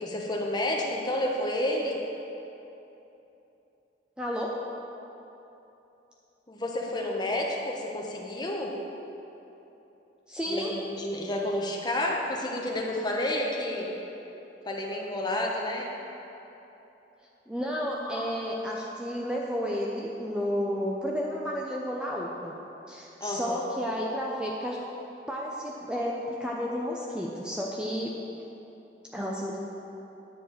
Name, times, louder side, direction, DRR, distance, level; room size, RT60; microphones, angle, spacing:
voice 1, 0.0-2.0 6.5-8.8 10.5-13.9 14.7-15.9 18.0-18.4 23.2-23.7, left 1 dB, 25° left, -1 dB, 1.1 m, -30 dB
voice 2, 4.2-4.5 10.3-10.7 17.5-22.5 22.9-24.8 25.3-28.1 29.1-29.6, equal, 5° right, -3 dB, 0.6 m, -32 dB
10.5 x 4.6 x 7.8 m, 3.0 s
head